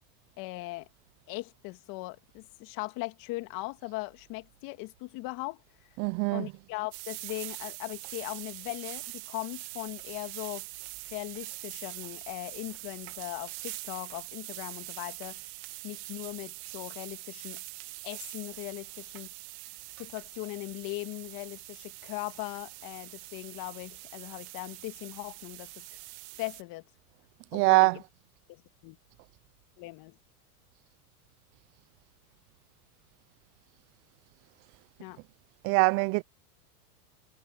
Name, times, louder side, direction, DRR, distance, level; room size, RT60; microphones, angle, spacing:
voice 1, 0.4-0.9 1.3-5.6 6.3-10.7 11.0-15.4 15.8-17.6 18.0-19.3 20.0-26.0 26.4-26.9 27.5-28.0 28.5-29.0 29.8-30.2 35.0-35.2, left 22 dB, 45° left, 2.4 m, -39 dB
voice 2, 6.0-6.5 27.5-28.1 35.6-36.2, right 28 dB, 30° right, 0.5 m, -23 dB
sound 1, 6.9-26.6, right 25 dB, 50° right, 2.1 m, -44 dB
supercardioid pair, 130°, 46 cm